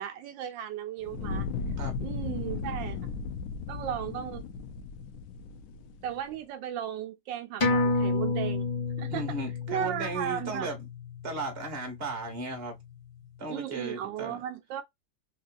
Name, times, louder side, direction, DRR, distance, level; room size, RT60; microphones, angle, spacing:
voice 1, 0.0-1.5 2.0-3.0 3.7-4.4 6.0-8.7 9.0-9.2 9.7-10.7 13.5-14.8, right 10 dB, 80° right, 1.3 m, -35 dB
Fire, 1.0-6.2, left 4 dB, 65° left, 1.0 m, -36 dB
sound 1, 7.6-12.5 12.9-13.0, left 3 dB, 20° left, 1.0 m, -30 dB
voice 2, 9.1-10.9 11.2-12.7 13.4-14.4, right 2 dB, 35° right, 1.3 m, -36 dB
3.5 x 2.8 x 2.4 m
omnidirectional pair, 2.0 m